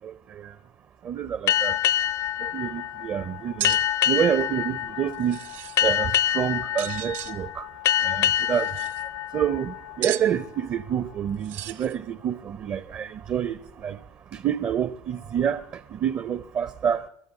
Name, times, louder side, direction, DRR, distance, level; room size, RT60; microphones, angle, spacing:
voice 1, 0.0-0.5 1.0-1.8 2.4-3.8 4.1-5.4 5.8-7.7 8.0-8.7 9.3-14.0 14.3-17.1, right 9 dB, 35° right, 0.5 m, -28 dB
sound 1, 1.5-10.6, left 11 dB, 50° left, 0.5 m, -26 dB
sound 2, 3.6-3.8 5.1-5.8 6.8-7.3 8.4-9.0 10.0-10.3 11.4-12.0, right 13 dB, 80° right, 0.8 m, -35 dB
22.5 x 7.7 x 8.2 m
supercardioid pair, 120°, 7 cm